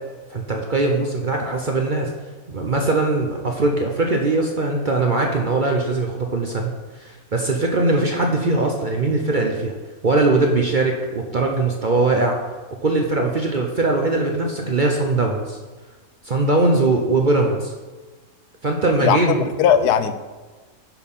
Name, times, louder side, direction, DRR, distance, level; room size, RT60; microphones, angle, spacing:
voice 1, 0.3-2.1 2.5-6.7 7.0-9.7 10.0-12.4 12.8-15.6 16.2-17.7 18.6-19.6, right 2 dB, 45° right, 1 dB, 0.7 m, -20 dB
voice 2, 19.0-20.1, left 8 dB, 85° left, 11 dB, 1.2 m, -18 dB
9.8 x 4.5 x 5.4 m, 1.3 s
omnidirectional pair, 1.6 m